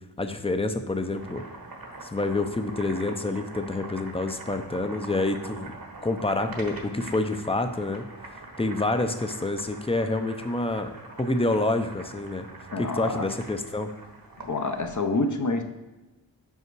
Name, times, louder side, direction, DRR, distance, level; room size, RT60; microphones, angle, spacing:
voice 1, 0.2-1.4 2.0-5.7 6.0-8.0 8.6-10.9 11.2-12.5 12.8-13.9, left 2 dB, 15° left, 7 dB, 0.6 m, -27 dB
Boiling, 1.0-15.0, right 2 dB, 50° right, 1.3 m, -43 dB
voice 2, 12.7-13.3 14.4-15.6, left 2 dB, 45° left, 5 dB, 0.8 m, -27 dB
5.6 x 4.9 x 4.7 m, 1.1 s
cardioid pair, 50°, 43 cm